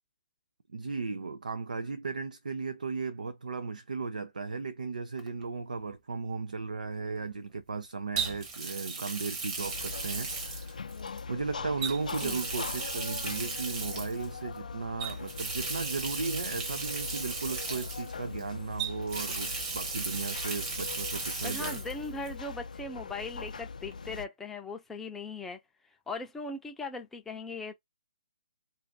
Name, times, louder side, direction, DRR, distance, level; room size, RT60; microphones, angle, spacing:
voice 1, 0.7-10.8 11.3-21.8, right 4 dB, 85° right, 0.5 m, -36 dB
Water tap faucet, 5.2-5.4 8.2-11.2 11.8-14.3 15.0-18.4 18.8-21.9 22.2-22.3 23.9-24.0, right 4 dB, 25° right, 1.0 m, -36 dB
sound 1, 9.6-24.3, left 5 dB, 80° left, 0.4 m, -41 dB
voice 2, 21.4-25.6 26.1-27.7, left 3 dB, 5° left, 0.5 m, -39 dB
2.6 x 2.5 x 3.7 m
hypercardioid pair, 150°, 4 cm